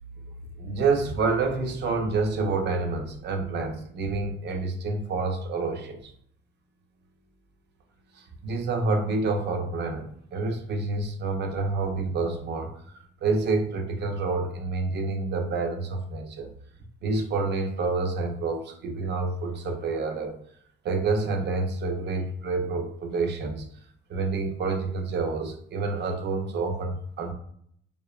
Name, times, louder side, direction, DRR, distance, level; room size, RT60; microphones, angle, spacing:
voice 1, 0.6-6.1 8.2-12.8 13.2-16.5 17.0-20.4 20.8-23.6 24.1-27.3, right 3 dB, 60° right, 3 dB, 0.5 m, -28 dB
2.7 x 2.1 x 2.3 m, 0.66 s
cardioid pair, 90°, 20 cm